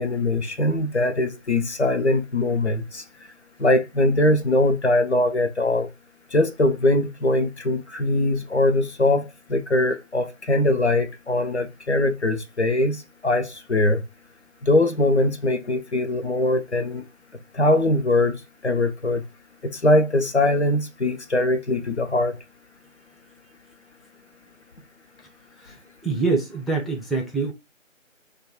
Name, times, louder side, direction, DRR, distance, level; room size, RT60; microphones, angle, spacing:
voice 1, 0.0-3.0 3.6-5.9 6.3-14.0 14.6-17.0 17.5-19.2 19.6-22.4, left 1 dB, 60° left, 0.5 m, -22 dB
voice 2, 26.0-27.5, right 4 dB, ahead, 0.4 m, -25 dB
2.2 x 2.0 x 2.8 m
figure-of-eight pair, 170°, 39 cm